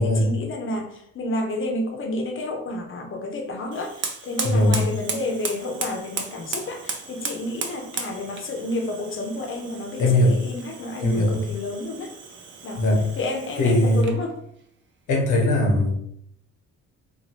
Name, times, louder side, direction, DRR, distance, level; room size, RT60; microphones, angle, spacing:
voice 1, 0.0-12.1 12.6-12.9 13.1-14.4, left 2 dB, 40° left, 3 dB, 0.7 m, -30 dB
Fire, 3.7-14.3, right 5 dB, 40° right, 0.5 m, -36 dB
voice 2, 4.4-4.9 10.0-10.4 11.0-11.4 12.8-13.1 13.6-14.1 15.1-16.0, left 1 dB, 80° left, 0 dB, 1.1 m, -19 dB
2.8 x 2.5 x 2.9 m, 0.71 s
cardioid pair, 90°, 30 cm